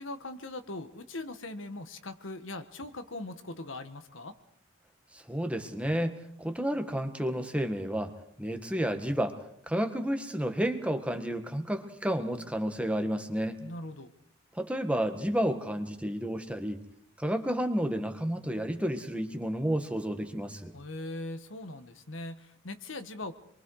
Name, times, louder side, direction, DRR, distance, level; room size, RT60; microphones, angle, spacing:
voice 1, 0.0-4.3 13.6-14.1 20.7-23.3, left 2 dB, 70° left, 9 dB, 1.6 m, -40 dB
voice 2, 5.1-8.1 8.4-9.4 9.7-13.6 14.5-16.8 17.2-20.7, equal, 5° right, 6 dB, 1.7 m, -31 dB
27.0 x 23.5 x 4.9 m, 0.68 s
head